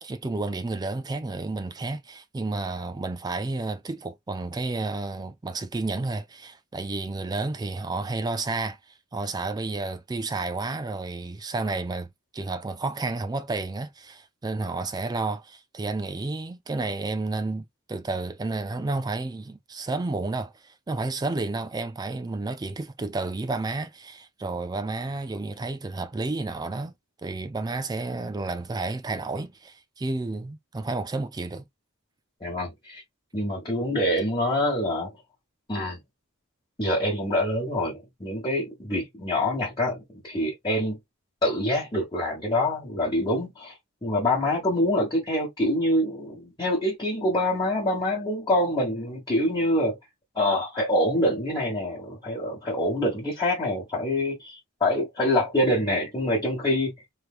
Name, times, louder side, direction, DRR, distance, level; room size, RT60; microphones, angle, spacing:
voice 1, 0.0-26.9 27.2-31.7, right 3 dB, 20° right, 0.3 m, -31 dB
voice 2, 32.4-33.0 33.3-35.1 35.7-36.0 36.8-41.0 41.4-43.7 44.0-49.9 50.3-56.9, left 1 dB, 20° left, 1.2 m, -25 dB
3.3 x 3.1 x 2.4 m
head